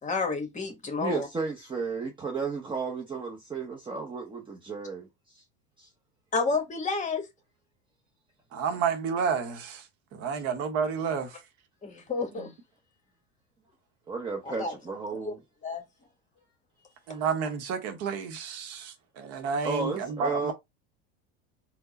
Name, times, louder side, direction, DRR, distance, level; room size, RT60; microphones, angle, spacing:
voice 1, 0.0-1.3 6.3-7.3 11.8-12.5 14.4-14.7 15.2-15.4 15.6-15.8, left 4 dB, 25° left, 1.4 m, -30 dB
voice 2, 1.0-5.1 5.3-5.4 5.8-5.9 14.1-15.4 19.6-20.5, right 4 dB, 15° right, 0.8 m, -33 dB
voice 3, 8.5-9.9 10.1-11.4 17.1-20.5, right 6 dB, 50° right, 0.9 m, -30 dB
4.4 x 2.2 x 4.0 m
supercardioid pair, 115°, 31 cm